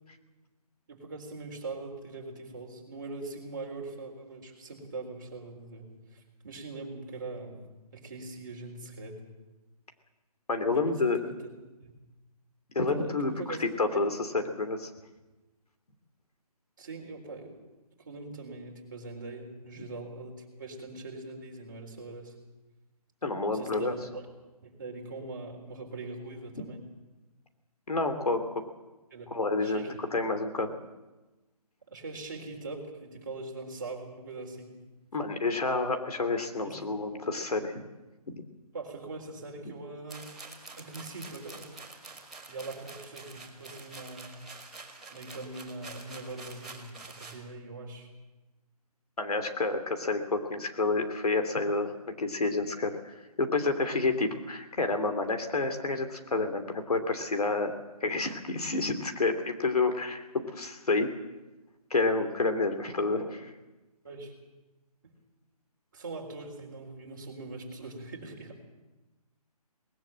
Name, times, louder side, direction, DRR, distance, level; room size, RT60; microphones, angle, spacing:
voice 1, 0.9-7.6 7.9-9.2 10.7-11.3 11.8-11.9 12.9-14.1 16.8-17.5 18.0-22.4 23.5-24.2 24.6-26.8 29.1-29.3 29.6-30.0 31.9-34.8 36.6-36.8 37.0-37.2 38.7-40.3 40.8-41.7 42.5-44.4 45.1-48.1 64.0-64.3 65.0-65.1 65.9-68.6, right 3 dB, 30° right, 0 dB, 3.8 m, -42 dB
voice 2, 10.5-11.2 12.7-14.9 19.8-19.9 23.2-23.9 27.9-28.6 29.3-30.7 35.1-37.8 38.3-38.4 49.2-57.7 58.0-60.2 60.5-61.1 61.9-63.5, left 3 dB, 70° left, 7 dB, 2.9 m, -29 dB
sound 1, 40.1-47.4, right 3 dB, ahead, 1.3 m, -47 dB
20.0 x 19.5 x 7.7 m, 1.1 s
hypercardioid pair, 180°, 20 cm